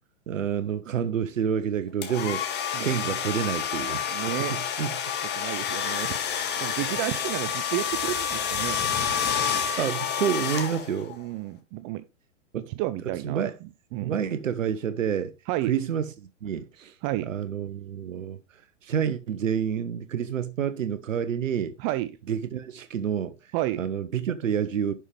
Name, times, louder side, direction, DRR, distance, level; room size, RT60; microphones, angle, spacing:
voice 1, 0.3-4.1 4.5-4.9 9.8-11.1 12.5-12.7 13.2-13.5 14.0-15.3 15.7-17.0 17.2-18.4 18.8-21.7 22.3-23.4 23.8-24.9, right 8 dB, 90° right, 0.8 m, -28 dB
sound 1, 2.0-11.1, left 7 dB, 25° left, 1.8 m, -29 dB
voice 2, 4.1-4.5 5.3-6.2 6.6-8.8 11.1-12.0 12.8-13.4 13.9-14.2 15.5-15.7 17.0-17.3 21.8-22.1 23.5-23.8, right 16 dB, 25° right, 0.4 m, -31 dB
11.0 x 5.8 x 3.3 m
hypercardioid pair, 120°, 37 cm